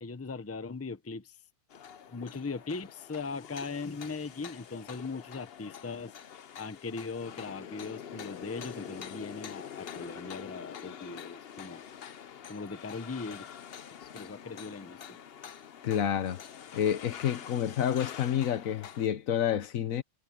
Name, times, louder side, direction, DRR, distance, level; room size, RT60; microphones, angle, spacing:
voice 1, 0.0-1.4 2.1-6.1 6.6-11.8 12.5-13.5 14.0-15.2, left 4 dB, 15° left, 0.6 m, -39 dB
sound 1, 1.7-19.1, left 8 dB, 55° left, 0.9 m, -46 dB
voice 2, 15.8-16.4 16.7-20.0, left 9 dB, 80° left, 1.3 m, -29 dB
omnidirectional pair, 1.4 m